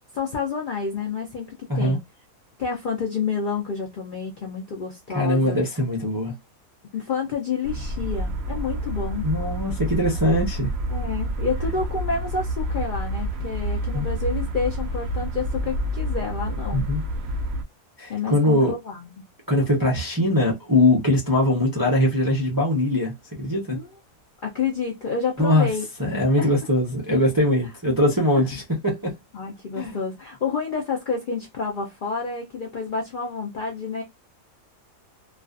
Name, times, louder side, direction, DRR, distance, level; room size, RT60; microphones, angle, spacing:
voice 1, 0.1-2.0 2.6-5.6 6.9-9.3 10.9-16.8 18.1-19.3 23.7-23.9 24.4-25.8 26.4-26.5 28.4-28.5 29.3-34.0, left 5 dB, 90° left, 0.4 m, -29 dB
voice 2, 5.1-6.3 9.2-10.7 13.9-14.1 16.7-17.0 18.0-18.7 19.5-23.8 25.4-25.7 26.0-29.1 29.7-30.0, left 1 dB, 35° right, 0.3 m, -21 dB
sound 1, 7.6-17.6, right 1 dB, 65° right, 0.6 m, -28 dB
2.4 x 2.4 x 2.3 m
omnidirectional pair, 1.6 m